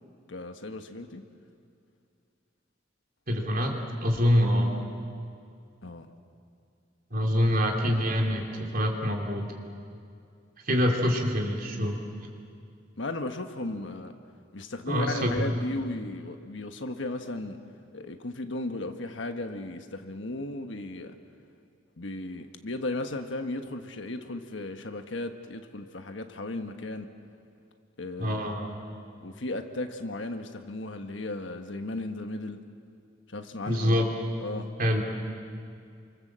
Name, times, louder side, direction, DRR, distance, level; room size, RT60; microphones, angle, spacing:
voice 1, 0.3-1.2 5.8-6.1 13.0-14.1 14.5-17.6 17.9-21.2 22.0-27.1 28.0-28.5 29.2-32.6 33.3-34.0 34.4-34.7, left 2 dB, 70° left, 6 dB, 1.4 m, -35 dB
voice 2, 3.3-4.8 7.1-9.4 10.6-12.0 14.9-15.5 28.2-28.8 33.6-34.1 34.8-35.0, equal, 45° right, 1 dB, 3.2 m, -25 dB
28.5 x 25.0 x 7.6 m, 2.4 s
head